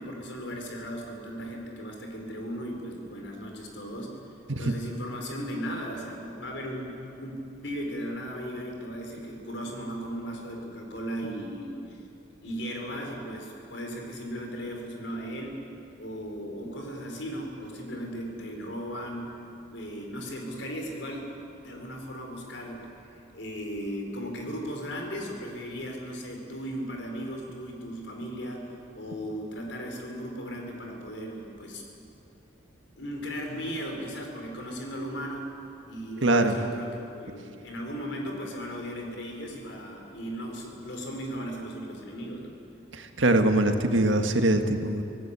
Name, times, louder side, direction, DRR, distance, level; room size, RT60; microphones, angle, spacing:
voice 1, 0.0-4.1 4.6-12.0 12.4-15.6 16.0-19.3 19.6-21.3 21.6-28.6 28.9-31.8 32.9-35.5 35.8-42.5, equal, 75° left, 2 dB, 4.7 m, -37 dB
voice 2, 36.2-36.5 42.9-45.0, right 2 dB, 85° right, 6 dB, 1.8 m, -23 dB
26.0 x 17.0 x 8.4 m, 2.8 s
head